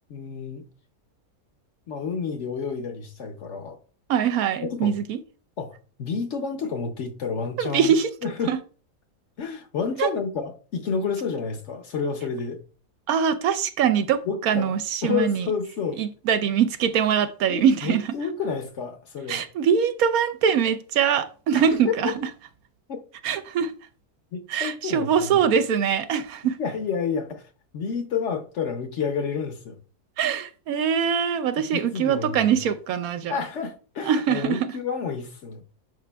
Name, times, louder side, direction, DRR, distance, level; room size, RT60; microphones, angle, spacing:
voice 1, 0.1-0.6 1.9-3.8 4.6-4.9 5.6-7.9 8.2-8.5 9.4-12.6 14.3-14.7 15.0-16.0 17.5-19.4 21.8-21.9 22.9-23.0 24.3-25.5 26.6-27.4 27.7-29.8 31.6-32.6 33.3-35.6, left 6 dB, 60° left, 0.9 m, -30 dB
voice 2, 4.1-5.2 7.6-8.1 8.5-8.6 10.0-10.1 13.1-15.5 16.0-18.1 19.3-22.3 23.2-23.7 24.5-26.6 30.2-33.4 34.0-34.7, right 7 dB, 75° right, 1.0 m, -23 dB
11.0 x 4.9 x 2.2 m
omnidirectional pair, 1.6 m